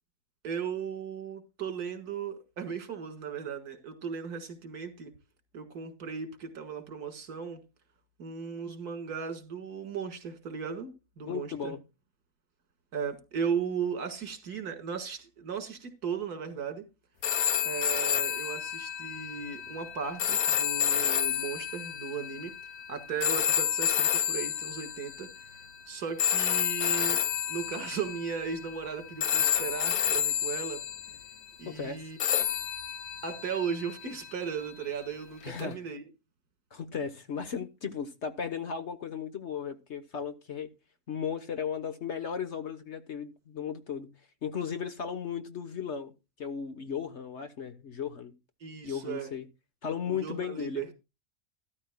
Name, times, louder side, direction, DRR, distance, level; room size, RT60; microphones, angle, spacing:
voice 1, 0.4-5.1 5.5-7.6 8.2-11.7 12.9-16.8 17.6-22.5 22.9-27.2 27.5-30.8 31.6-32.2 33.2-36.1 48.6-49.3 50.1-50.9, right 6 dB, 75° right, 2.3 m, -36 dB
voice 2, 11.3-11.8 31.7-32.1 35.4-35.8 36.7-40.7 41.1-46.1 46.4-48.3 48.8-49.5 49.8-50.8, left 7 dB, 50° left, 1.3 m, -36 dB
sound 1, 17.2-25.4 26.2-28.9 29.2-31.3 32.2-34.4 35.6-35.7, left 10 dB, 65° left, 1.6 m, -30 dB
13.5 x 13.5 x 2.2 m
omnidirectional pair, 1.7 m